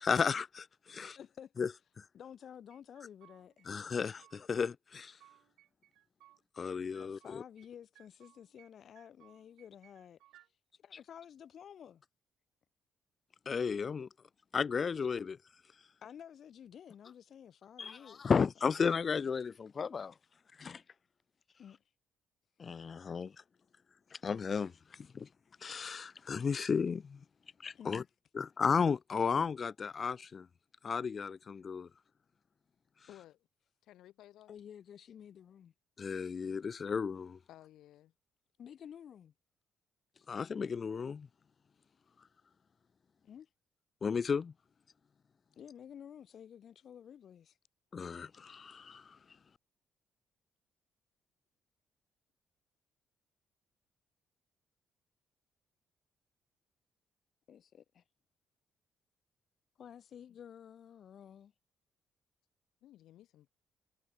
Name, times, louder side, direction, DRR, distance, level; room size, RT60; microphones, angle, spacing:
voice 1, 0.0-1.2 1.6-1.7 2.0-2.1 3.7-5.2 6.6-7.4 13.5-14.1 14.5-15.4 17.8-20.1 20.6-20.8 22.6-23.3 24.1-24.7 25.0-25.3 25.6-27.2 27.6-28.0 28.3-30.5 30.8-31.9 36.0-37.4 40.3-41.3 44.0-44.5 47.9-49.2, left 6 dB, 30° left, 0.6 m, -34 dB
voice 2, 1.1-1.5 2.1-3.7 7.0-10.2 10.8-12.0 16.0-18.2 21.6-21.8 27.7-28.1 34.5-35.7 38.6-39.3 43.2-43.5 45.6-47.6 57.5-58.0 59.8-61.5, left 9 dB, 50° left, 1.5 m, -52 dB
sound 1, 2.7-3.7 4.0-4.7 4.9-6.4 6.7-7.7 8.0-8.7 9.0-10.5, right 14 dB, 80° right, 4.9 m, -64 dB
voice 3, 33.1-33.5 33.8-34.5 37.5-38.1 60.3-60.4 62.8-63.5, left 13 dB, 75° left, 6.0 m, -57 dB
cardioid pair, 155°, 0 cm